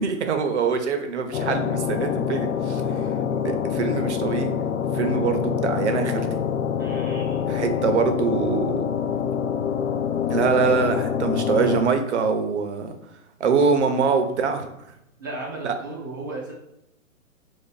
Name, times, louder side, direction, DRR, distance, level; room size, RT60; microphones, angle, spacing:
voice 1, 0.0-2.8 3.4-4.5 4.9-6.4 7.5-8.8 10.3-12.9 13.4-14.7 15.6-15.7, right 5 dB, 55° right, 7 dB, 0.7 m, -23 dB
sound 1, 1.3-11.8, left 8 dB, 65° left, 0.6 m, -26 dB
voice 2, 6.8-7.4 15.2-16.5, right 2 dB, 15° right, -4 dB, 0.4 m, -35 dB
3.2 x 2.7 x 3.8 m, 0.84 s
hypercardioid pair, 150°, 42 cm